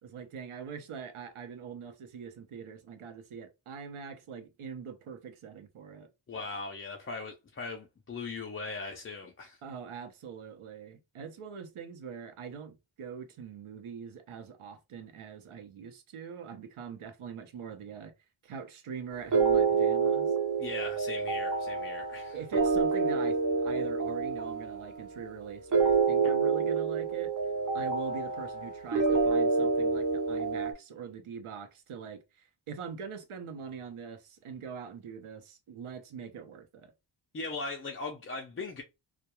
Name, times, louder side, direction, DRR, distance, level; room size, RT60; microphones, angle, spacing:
voice 1, 0.0-6.1 9.6-18.1 18.4-20.3 22.3-27.3 27.7-36.9, right 6 dB, 80° right, 0.7 m, -43 dB
voice 2, 6.3-9.6 20.6-22.4 37.3-38.8, left 3 dB, 30° left, 0.3 m, -39 dB
sound 1, 19.3-30.7, right 4 dB, 40° right, 0.6 m, -28 dB
2.2 x 2.2 x 2.9 m
wide cardioid pair, 140°, 49 cm